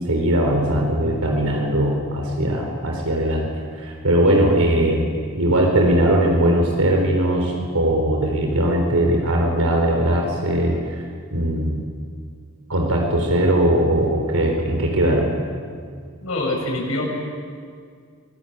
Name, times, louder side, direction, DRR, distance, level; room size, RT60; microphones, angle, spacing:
voice 1, 0.1-3.5 3.8-5.1 5.3-11.0 11.3-11.8 12.7-15.3, right 1 dB, 85° right, 1 dB, 4.1 m, -20 dB
voice 2, 16.2-17.1, left 1 dB, 75° left, 0 dB, 7.9 m, -24 dB
26.5 x 20.5 x 9.1 m, 2.1 s
head